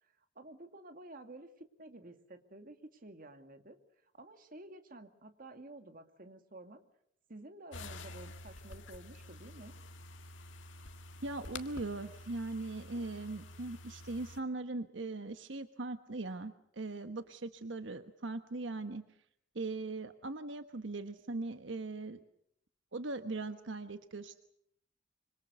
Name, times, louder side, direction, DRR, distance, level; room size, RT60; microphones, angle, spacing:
voice 1, 0.0-3.8 4.1-6.8 7.3-9.7, right 2 dB, 50° right, 7 dB, 2.2 m, -52 dB
sound 1, 7.7-14.4, left 2 dB, 90° left, 1.9 m, -49 dB
voice 2, 11.2-19.0 19.5-22.2 22.9-24.4, right 2 dB, 80° right, 9 dB, 1.2 m, -40 dB
25.5 x 25.5 x 6.9 m, 0.71 s
head